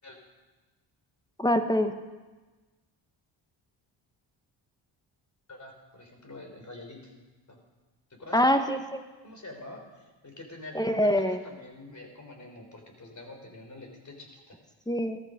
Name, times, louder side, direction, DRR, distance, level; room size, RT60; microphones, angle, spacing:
voice 1, 1.4-1.9 8.3-9.0 10.7-11.4 14.9-15.2, equal, 10° left, 7 dB, 1.4 m, -24 dB
voice 2, 5.5-7.1 7.5-7.6 8.2-8.4 9.2-14.6, left 2 dB, 35° left, 2 dB, 4.1 m, -46 dB
13.5 x 13.5 x 5.2 m, 1.2 s
supercardioid pair, 55°, 49 cm